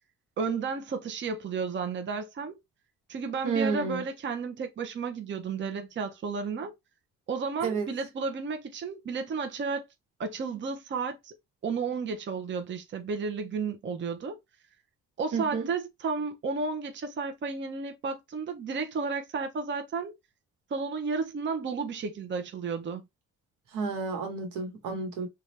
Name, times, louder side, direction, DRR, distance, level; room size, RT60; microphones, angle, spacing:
voice 1, 0.4-2.5 3.1-6.7 7.3-9.8 10.2-11.3 11.6-14.4 15.2-20.1 20.7-23.0, right 4 dB, 40° right, 0.6 m, -32 dB
voice 2, 3.4-4.0 7.6-7.9 15.3-15.7 23.7-25.3, right 5 dB, 85° right, 1.1 m, -30 dB
2.7 x 2.3 x 3.2 m
cardioid pair, 90°, 30 cm